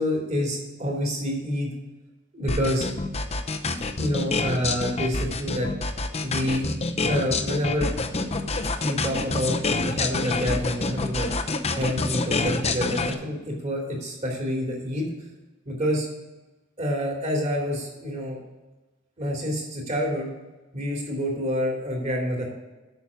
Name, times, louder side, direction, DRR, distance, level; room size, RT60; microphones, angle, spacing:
voice 1, 0.0-1.7 2.3-2.9 4.0-5.7 6.2-6.6 7.0-7.9 8.8-11.3 11.8-15.1 15.7-16.1 16.8-18.4 19.2-20.3 20.7-22.5, equal, 35° right, -1 dB, 2.9 m, -27 dB
sound 1, 2.5-13.1, left 3 dB, 30° left, 0.8 m, -27 dB
8.3 x 6.2 x 7.0 m, 1.1 s
head